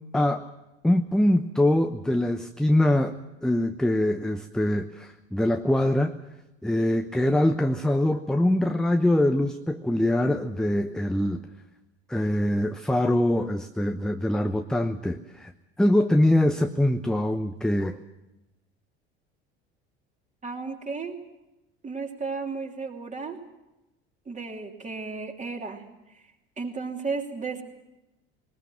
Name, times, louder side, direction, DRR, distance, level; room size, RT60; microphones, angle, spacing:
voice 1, 0.1-0.5 0.8-6.2 6.6-11.5 12.1-15.5 15.8-18.0, left 1 dB, ahead, 7 dB, 0.8 m, -23 dB
voice 2, 20.4-21.2 21.8-23.4 24.3-25.8 26.6-27.6, right 4 dB, 20° right, 3 dB, 2.9 m, -33 dB
20.5 x 20.0 x 7.6 m, 0.97 s
figure-of-eight pair, 70°, 32 cm